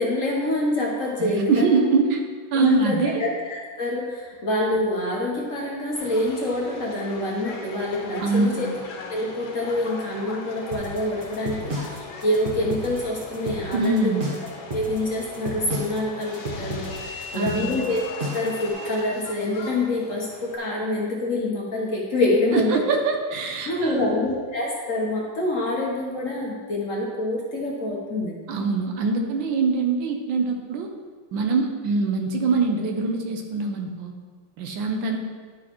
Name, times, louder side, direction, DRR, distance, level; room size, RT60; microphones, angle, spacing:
voice 1, 0.0-1.7 2.5-8.7 9.1-14.2 14.7-18.0 18.3-22.8 23.6-28.3, left 1 dB, 45° left, -2 dB, 1.2 m, -26 dB
voice 2, 1.2-2.2 2.5-3.2 8.2-8.6 13.7-14.3 17.3-17.7 22.5-24.1 28.5-30.9 31.3-34.1 34.6-35.2, right 4 dB, 75° right, 3 dB, 1.5 m, -23 dB
Subway metro underground, 5.9-20.6, left 3 dB, 75° left, 1.7 m, -39 dB
sound 1, 10.7-18.6, equal, 40° right, 0.7 m, -33 dB
10.5 x 6.3 x 3.0 m, 1.5 s
omnidirectional pair, 2.2 m